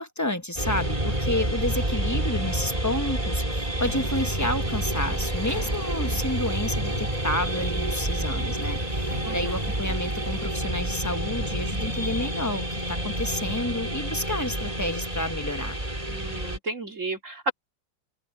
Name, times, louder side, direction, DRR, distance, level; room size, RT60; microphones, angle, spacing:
voice 1, 0.0-15.8, left 1 dB, 10° left, 0.8 m, -30 dB
sound 1, 0.6-16.6, right 1 dB, 20° right, 3.7 m, -28 dB
sound 2, 3.7-10.4, right 1 dB, 60° right, 7.1 m, -43 dB
voice 2, 9.2-9.7 16.1-17.5, right 2 dB, 40° right, 3.0 m, -33 dB
open air
omnidirectional pair, 2.0 m